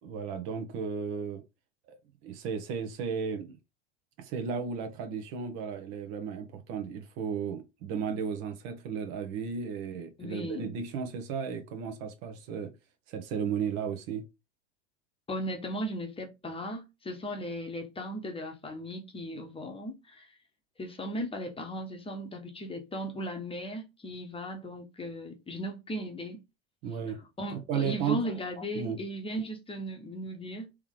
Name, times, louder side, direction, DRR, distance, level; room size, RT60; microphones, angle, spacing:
voice 1, 0.0-1.4 1.9-2.0 2.2-3.6 4.2-12.7 13.1-14.2 26.8-27.2 27.5-28.2 28.7-29.0, right 6 dB, 50° right, 1.0 m, -34 dB
voice 2, 10.2-10.7 15.3-20.3 20.8-26.4 27.4-30.7, equal, 15° left, 1.0 m, -37 dB
3.5 x 3.1 x 3.6 m
hypercardioid pair, 85°, 33 cm